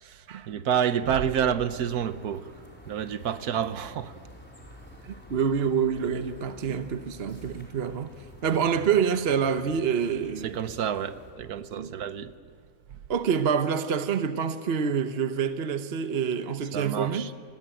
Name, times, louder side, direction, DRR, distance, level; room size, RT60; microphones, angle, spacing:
voice 1, 0.0-2.5 2.9-4.1 10.4-12.3 16.7-17.3, right 8 dB, 75° right, 1.4 m, -29 dB
sound 1, 1.7-11.3, left 1 dB, 5° left, 4.7 m, -49 dB
voice 2, 5.0-8.1 8.4-10.6 11.7-11.9 13.1-17.3, right 7 dB, 45° right, 1.0 m, -27 dB
28.5 x 20.5 x 9.0 m
omnidirectional pair, 1.6 m